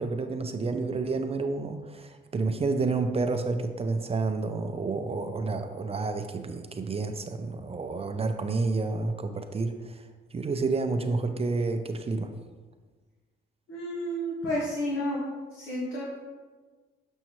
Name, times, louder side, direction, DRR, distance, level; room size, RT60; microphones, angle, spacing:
voice 1, 0.0-12.3, right 3 dB, 30° right, 7 dB, 0.5 m, -30 dB
voice 2, 13.7-15.2 15.5-16.2, equal, 85° left, -7 dB, 1.7 m, -31 dB
7.2 x 5.4 x 3.1 m, 1.4 s
cardioid pair, 90°, 20 cm